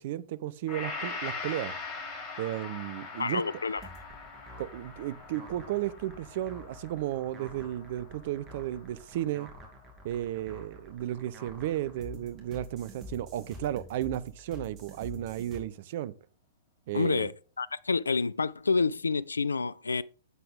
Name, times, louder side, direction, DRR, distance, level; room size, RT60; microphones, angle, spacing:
voice 1, 0.0-1.7 2.4-3.4 4.6-9.5 10.0-16.1 16.9-17.3, right 13 dB, 45° right, 0.7 m, -34 dB
Gong, 0.7-9.0 9.4-9.5, left 4 dB, 30° left, 5.8 m, -42 dB
voice 2, 3.2-3.8 16.9-17.3 17.6-20.0, left 4 dB, 75° left, 0.4 m, -28 dB
sound 1, 3.8-15.6, left 1 dB, 25° right, 2.9 m, -48 dB
11.0 x 7.9 x 3.6 m
figure-of-eight pair, 110°, 0 cm